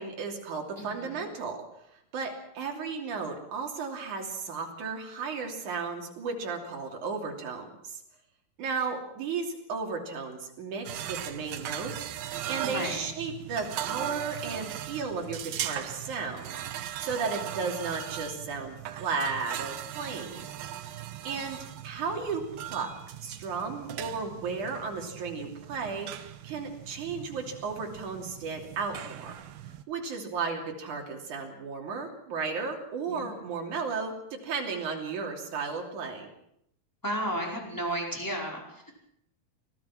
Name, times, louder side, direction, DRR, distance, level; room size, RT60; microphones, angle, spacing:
voice 1, 0.0-1.6 2.1-8.0 8.6-20.5 21.2-22.4 22.7-22.9 23.2-29.3 29.9-36.3, right 5 dB, 50° right, 1 dB, 4.2 m, -34 dB
voice 2, 0.8-1.2 12.6-13.1 33.1-33.3 37.0-38.9, right 1 dB, 5° left, -1 dB, 4.4 m, -33 dB
sound 1, 10.9-29.8, right 12 dB, 75° right, 2.8 m, -39 dB
24.5 x 17.5 x 6.0 m, 0.75 s
omnidirectional pair, 4.6 m